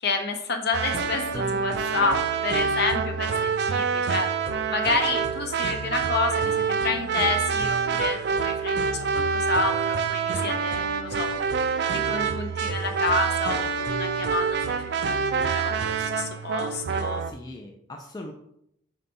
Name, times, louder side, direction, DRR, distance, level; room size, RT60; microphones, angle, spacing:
voice 1, 0.0-4.3 4.7-11.3 11.9-14.6 15.0-17.2, left 3 dB, 50° left, 5 dB, 0.8 m, -29 dB
sound 1, 0.7-17.3, right 6 dB, 50° right, 0.4 m, -26 dB
voice 2, 17.2-18.3, left 1 dB, 20° left, 1 dB, 0.4 m, -41 dB
4.4 x 4.1 x 5.3 m, 0.75 s
head